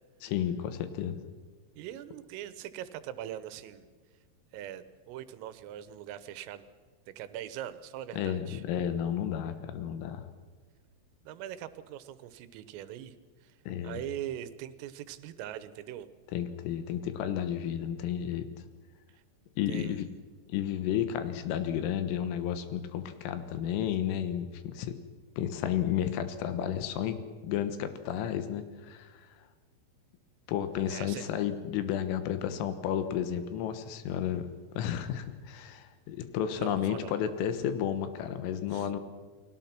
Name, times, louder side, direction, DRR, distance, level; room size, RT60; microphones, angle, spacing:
voice 1, 0.2-1.2 8.1-10.3 13.7-14.0 16.3-18.5 19.6-20.1 20.5-25.0 25.4-29.2 30.5-34.5 34.8-39.0, left 9 dB, 90° left, 10 dB, 4.1 m, -32 dB
voice 2, 1.8-3.9 4.5-6.7 7.1-8.6 11.3-13.2 13.4-13.6 13.8-16.1 19.1-19.2 19.7-20.0 30.9-31.3 36.6-37.2 38.7-38.9, right 11 dB, 90° right, 13 dB, 3.7 m, -41 dB
29.5 x 20.5 x 6.1 m, 1.5 s
omnidirectional pair, 5.7 m